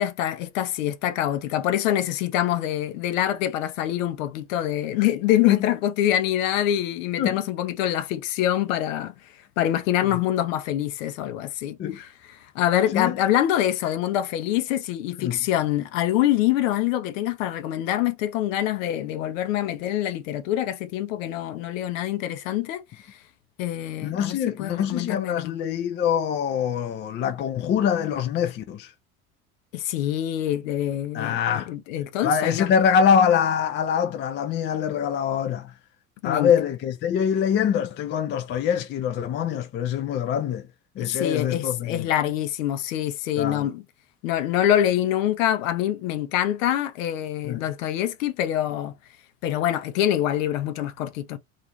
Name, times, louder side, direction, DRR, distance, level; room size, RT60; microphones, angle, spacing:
voice 1, 0.0-9.1 9.6-22.8 23.6-25.5 29.7-32.7 36.2-36.5 41.0-43.8 44.2-49.0 49.4-51.4, left 12 dB, 65° left, 0.6 m, -25 dB
voice 2, 24.0-28.9 31.1-31.7 32.2-35.7 36.2-40.7 41.0-42.1 43.4-43.7 47.5-47.6, left 8 dB, 30° left, 0.4 m, -24 dB
2.5 x 2.4 x 2.8 m
hypercardioid pair, 70°, 42 cm